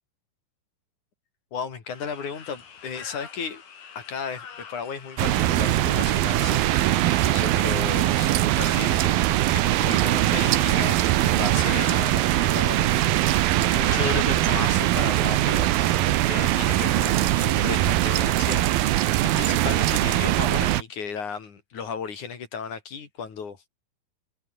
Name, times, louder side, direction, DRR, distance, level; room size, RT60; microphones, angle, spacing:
voice 1, 1.5-3.6 3.9-9.1 9.5-16.0 16.3-23.7, left 6 dB, 45° left, 4.4 m, -35 dB
sound 1, 1.9-16.3, left 7 dB, 65° left, 5.8 m, -44 dB
sound 2, 5.2-20.8, right 15 dB, 70° right, 2.6 m, -22 dB
omnidirectional pair, 5.1 m